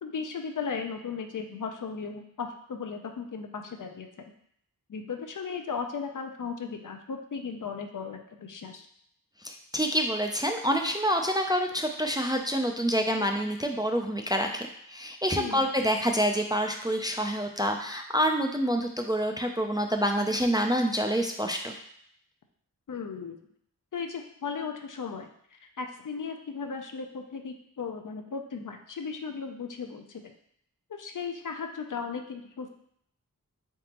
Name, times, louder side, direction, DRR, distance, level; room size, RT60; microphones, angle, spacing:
voice 1, 0.0-4.3 4.9-8.9 15.4-15.7 22.9-23.4 23.9-30.3 30.9-32.7, left 5 dB, 65° left, 5 dB, 0.5 m, -36 dB
voice 2, 9.4-21.7, equal, 15° right, 3 dB, 0.3 m, -27 dB
3.9 x 3.5 x 2.8 m, 0.69 s
wide cardioid pair, 65°, 34 cm